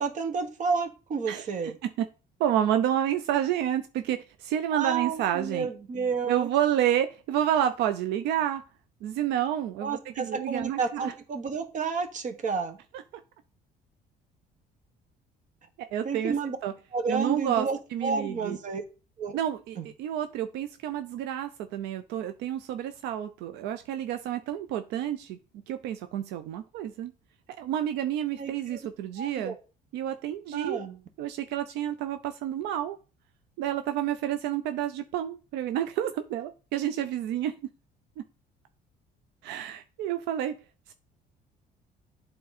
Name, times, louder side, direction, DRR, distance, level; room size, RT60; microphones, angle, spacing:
voice 1, 0.0-1.7 4.7-6.5 9.8-12.8 16.0-16.6 16.9-18.8 19.2-19.4 19.8-19.9 28.4-28.8 29.2-29.5 30.5-31.0, right 5 dB, 50° right, 8 dB, 1.2 m, -31 dB
voice 2, 2.4-5.7 6.3-8.6 9.0-11.1 15.9-16.3 16.6-16.7 17.1-18.6 19.3-25.4 25.7-27.1 27.6-29.5 29.9-30.8 31.2-33.0 33.6-37.6 39.4-40.6, right 11 dB, 85° right, 9 dB, 0.5 m, -29 dB
8.5 x 3.8 x 4.1 m, 0.33 s
cardioid pair, 110°, 17 cm